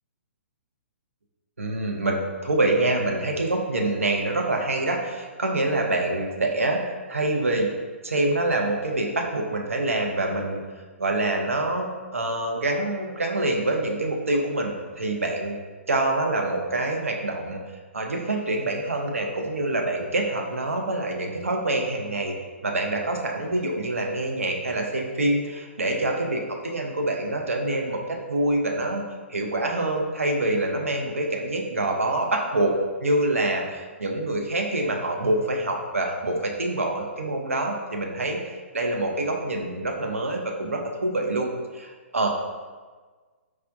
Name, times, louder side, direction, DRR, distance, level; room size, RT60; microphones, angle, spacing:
voice 1, 1.6-7.7 8.0-10.6 11.0-15.6 15.9-17.6 17.9-22.3 22.6-29.0 29.3-32.7 33.0-38.4 38.7-42.5, right 2 dB, 75° right, 1 dB, 0.5 m, -26 dB
4.7 x 2.1 x 2.5 m, 1.4 s
figure-of-eight pair, 125°, 7 cm